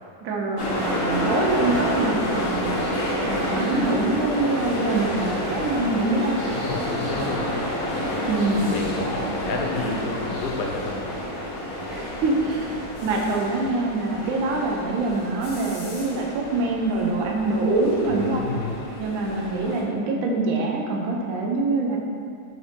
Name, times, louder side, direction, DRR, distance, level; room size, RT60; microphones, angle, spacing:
voice 1, 0.2-2.6 3.3-6.6 8.3-8.7 11.9-18.4 18.9-22.0, right 3 dB, 70° right, -1 dB, 0.9 m, -25 dB
sound 1, 0.6-19.8, equal, 65° left, 1.3 m, -29 dB
voice 2, 6.5-7.5 8.7-11.0 18.2-18.7, left 3 dB, 85° left, 1 dB, 1.2 m, -30 dB
4.8 x 2.6 x 3.3 m, 2.3 s
omnidirectional pair, 1.7 m